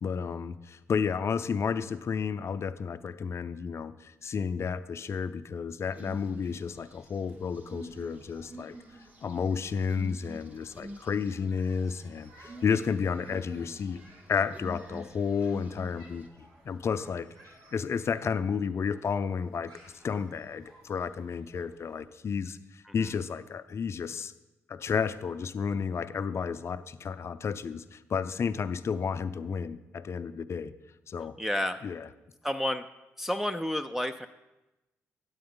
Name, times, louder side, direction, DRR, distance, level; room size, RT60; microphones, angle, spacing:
voice 1, 0.0-8.7 9.2-14.0 14.3-16.3 16.6-17.3 17.7-24.3 24.7-30.7 31.1-31.4 31.8-32.1, left 6 dB, 55° left, 13 dB, 0.4 m, -32 dB
sound 1, 5.9-16.3, right 1 dB, 30° right, 1.1 m, -47 dB
sound 2, 6.0-22.0, right 1 dB, 65° right, 3.3 m, -59 dB
voice 2, 31.4-31.8 32.4-32.8 33.2-34.3, left 1 dB, 5° right, 6 dB, 0.4 m, -30 dB
9.1 x 8.7 x 3.8 m, 0.99 s
supercardioid pair, 60°, 6 cm